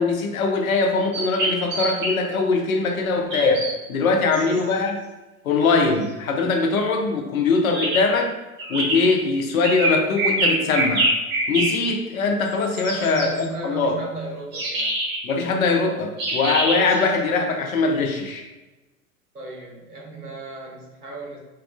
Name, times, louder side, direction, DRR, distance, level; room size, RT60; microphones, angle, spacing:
voice 1, 0.0-3.6 3.9-5.0 5.4-8.3 8.7-11.1 11.5-14.0 15.2-18.4, left 4 dB, 70° left, 3 dB, 0.6 m, -21 dB
sound 1, 1.1-2.1 3.3-3.7 4.3-4.6 7.7-8.0 8.6-9.0 9.6-11.7 12.4-13.4 14.5-15.2 16.2-17.1, right 1 dB, 25° right, 0.6 m, -24 dB
voice 2, 4.0-4.8 12.8-14.9 19.3-21.4, right 3 dB, 90° right, -2 dB, 0.8 m, -36 dB
3.0 x 2.3 x 2.4 m, 1.1 s
figure-of-eight pair, 95°, 44 cm